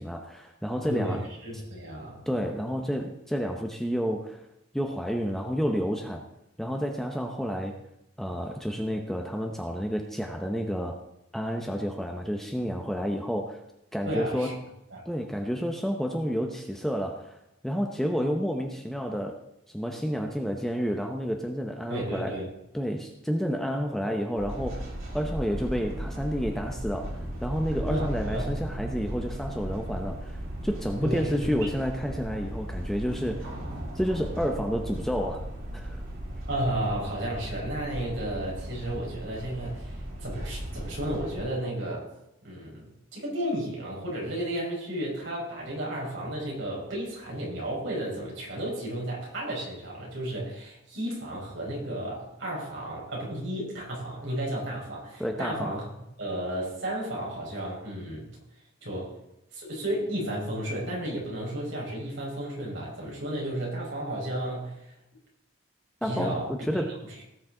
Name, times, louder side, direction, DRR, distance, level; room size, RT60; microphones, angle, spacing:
voice 1, 0.0-1.2 2.3-4.5 4.7-6.2 6.6-7.8 8.2-11.0 11.3-13.6 13.9-14.5 15.1-17.4 17.6-19.4 19.7-22.4 22.7-24.9 25.1-33.5 33.9-35.5 35.7-36.0 55.2-55.7 66.0-67.0, equal, ahead, 3 dB, 0.8 m, -30 dB
voice 2, 0.9-2.2 14.1-14.5 14.9-15.0 21.9-22.5 27.9-28.6 31.0-31.6 36.5-42.1 42.4-55.9 56.2-58.3 58.8-59.2 59.5-64.9 66.0-66.8, right 1 dB, 60° right, -3 dB, 5.3 m, -33 dB
sound 1, 24.3-41.3, equal, 80° right, 3.7 m, -36 dB
18.0 x 7.2 x 3.9 m, 0.85 s
head